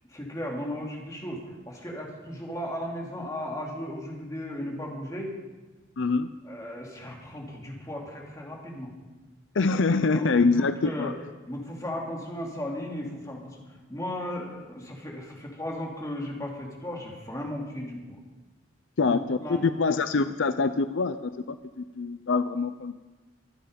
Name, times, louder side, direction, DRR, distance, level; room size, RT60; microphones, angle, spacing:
voice 1, 0.1-5.4 6.4-8.9 10.1-11.2 11.5-13.6 13.9-18.2 19.0-19.7, left 1 dB, 15° left, -1 dB, 2.9 m, -36 dB
voice 2, 6.0-6.3 9.6-11.1 19.0-21.2 21.5-23.1, left 4 dB, 70° left, 12 dB, 0.5 m, -25 dB
24.5 x 9.1 x 5.3 m, 1.2 s
head